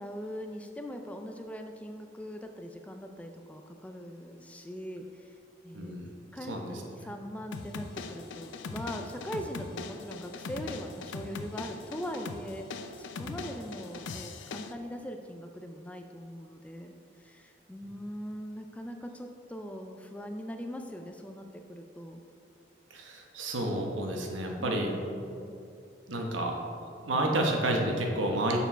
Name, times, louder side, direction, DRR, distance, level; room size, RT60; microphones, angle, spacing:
voice 1, 0.0-5.4 5.6-5.9 6.3-12.7 13.0-22.2 24.6-25.5, equal, 5° left, 5 dB, 0.3 m, -41 dB
voice 2, 5.7-6.2 6.5-7.1 22.9-24.9 26.1-26.5 27.0-28.6, right 1 dB, 85° right, 1 dB, 1.1 m, -30 dB
sound 1, 7.5-14.7, left 4 dB, 75° left, 0.4 m, -41 dB
6.9 x 4.5 x 5.6 m, 2.5 s
head